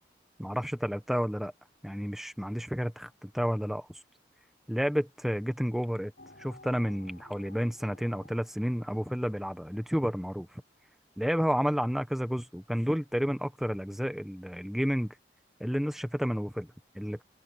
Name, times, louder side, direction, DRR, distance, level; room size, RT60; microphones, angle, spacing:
voice 1, 0.4-1.5 1.8-3.9 4.7-6.1 6.4-10.6 11.2-15.1 15.6-17.2, equal, ahead, 1.1 m, -31 dB
sound 1, 6.2-10.2, left 2 dB, 55° left, 6.8 m, -55 dB
open air
head